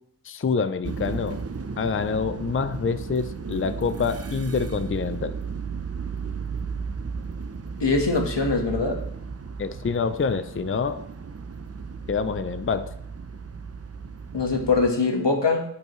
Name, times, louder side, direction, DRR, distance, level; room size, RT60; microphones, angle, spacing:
voice 1, 0.2-1.4 1.8-5.3 9.6-11.0 12.1-12.9, left 5 dB, 30° left, 12 dB, 0.5 m, -26 dB
sound 1, 0.8-14.9, right 5 dB, 35° right, 0.6 m, -35 dB
voice 2, 7.8-9.0 14.3-15.6, left 3 dB, 90° left, 2 dB, 1.4 m, -22 dB
15.0 x 5.6 x 3.1 m, 0.72 s
wide cardioid pair, 65°, 41 cm